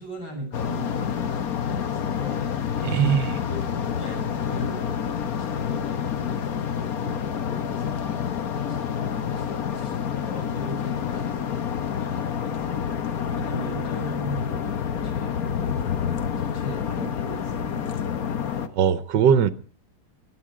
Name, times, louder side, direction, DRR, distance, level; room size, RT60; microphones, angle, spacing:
voice 1, 0.0-2.5 3.3-12.8 13.2-16.0 16.4-18.0, equal, 70° left, 7.6 m, -40 dB
sound 1, 0.5-18.7, left 8 dB, 55° left, 1.4 m, -28 dB
voice 2, 2.8-3.4 18.8-19.5, right 8 dB, 70° right, 1.5 m, -20 dB
22.5 x 9.0 x 4.9 m
omnidirectional pair, 2.1 m